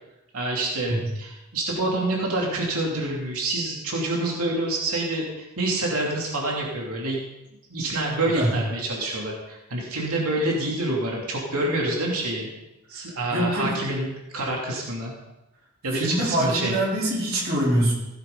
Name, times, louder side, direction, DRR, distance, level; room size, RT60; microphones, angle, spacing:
voice 1, 0.3-7.2 7.7-12.5 12.9-15.1 15.8-16.8, right 2 dB, 85° right, -2 dB, 2.8 m, -27 dB
voice 2, 13.3-13.7 15.9-17.9, right 1 dB, 45° right, -4 dB, 3.6 m, -24 dB
16.5 x 10.5 x 3.9 m, 0.94 s
head